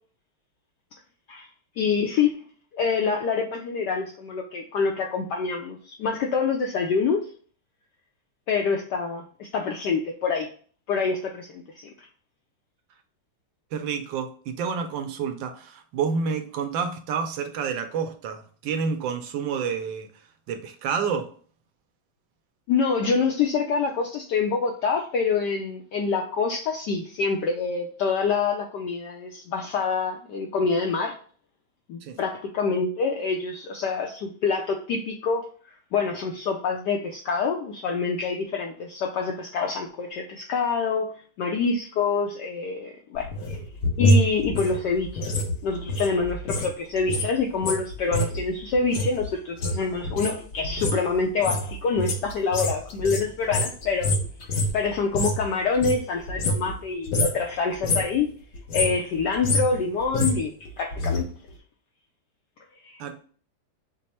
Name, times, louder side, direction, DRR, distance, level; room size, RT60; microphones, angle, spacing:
voice 1, 1.8-2.4 2.7-7.3 8.5-10.5 10.9-11.9 22.7-31.2 31.9-35.5 35.9-41.1 41.4-43.6 44.0-45.3 45.6-54.1 54.4-58.3 58.7-61.3 62.8-63.2, left 5 dB, 85° left, 0.9 m, -26 dB
voice 2, 13.7-20.1 20.5-21.3 32.0-32.2 63.0-63.2, right 6 dB, 75° right, 1.1 m, -29 dB
sound 1, 43.1-46.7 47.0-55.5 55.7-56.8 57.1-57.4 57.7-58.2 58.5-61.2 61.5-61.6, left 1 dB, 60° left, 1.3 m, -26 dB
5.2 x 2.0 x 4.2 m
omnidirectional pair, 2.4 m